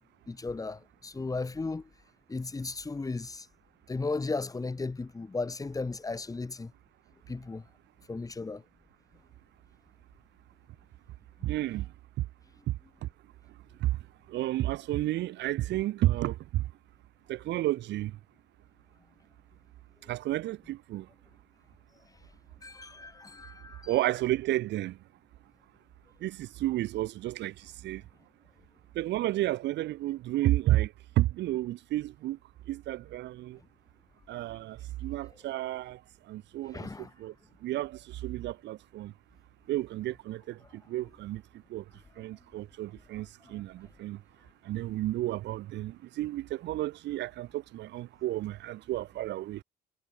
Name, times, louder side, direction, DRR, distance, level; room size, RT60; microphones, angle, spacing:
voice 1, 0.3-1.9 2.3-3.5 3.9-6.7 7.3-7.6 8.1-8.6 11.4-11.5 22.6-23.9 36.7-37.1, left 3 dB, 20° left, 6.0 m, -35 dB
voice 2, 11.4-11.9 13.8-13.9 14.3-16.6 17.3-18.1 20.1-21.1 23.9-25.0 26.2-28.0 28.9-32.4 32.7-33.6 34.3-36.0 36.3-36.9 37.2-37.3 37.6-39.1 39.7-41.4 41.7-41.8 42.2-44.2 44.6-49.6, right 15 dB, 85° right, 4.8 m, -31 dB
cardioid pair, 120°, 18 cm